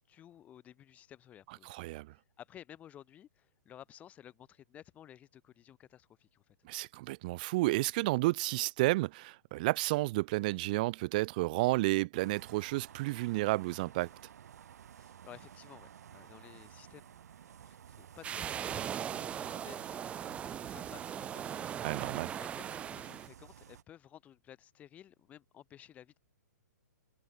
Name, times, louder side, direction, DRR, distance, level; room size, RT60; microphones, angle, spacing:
voice 1, 0.0-1.7 2.1-6.6 15.0-22.0 22.4-26.2, left 11 dB, 15° left, 5.7 m, -55 dB
voice 2, 1.6-2.1 6.6-14.1 21.8-22.3, right 21 dB, 30° right, 0.5 m, -31 dB
sound 1, 12.1-23.8, right 9 dB, 60° right, 2.3 m, -54 dB
sound 2, 18.2-23.3, right 9 dB, 10° right, 1.9 m, -39 dB
hypercardioid pair, 165°, 10 cm